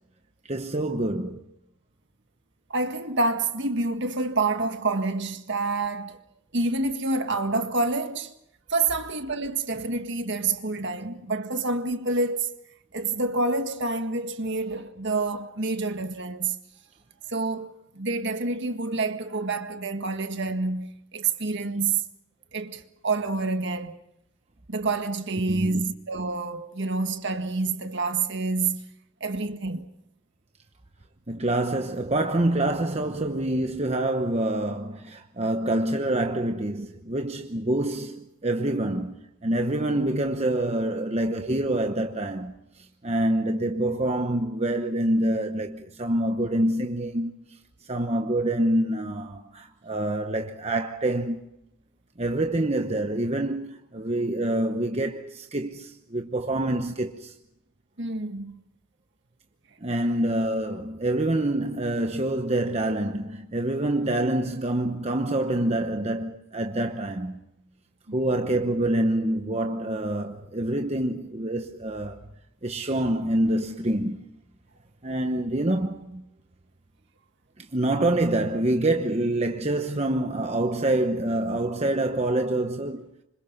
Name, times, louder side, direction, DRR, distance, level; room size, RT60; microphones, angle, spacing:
voice 1, 0.4-1.5 25.5-25.8 31.3-47.6 47.9-51.5 52.2-57.3 59.8-67.4 68.1-72.3 72.6-74.2 75.0-76.3 77.6-83.1, right 1 dB, 30° right, 1.0 m, -26 dB
voice 2, 2.7-6.2 6.5-8.3 8.7-12.5 12.9-16.6 17.3-22.0 22.5-24.0 24.7-28.9 29.2-29.9 58.0-58.6 68.1-68.2, right 3 dB, 50° right, 1.8 m, -28 dB
27.5 x 26.0 x 5.4 m
head